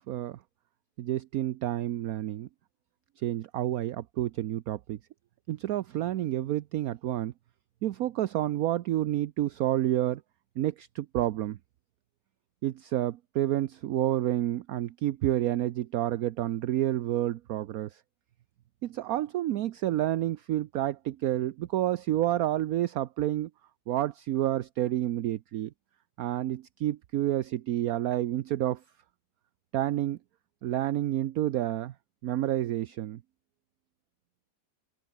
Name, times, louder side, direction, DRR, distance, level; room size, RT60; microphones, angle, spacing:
voice 1, 0.1-0.4 1.0-2.5 3.2-5.0 5.5-7.3 7.8-10.2 10.6-11.6 12.6-18.0 18.8-23.5 23.9-25.7 26.2-28.8 29.7-30.2 30.6-31.9 32.2-33.2, right 13 dB, 65° right, 1.0 m, -29 dB
open air
omnidirectional pair, 1.9 m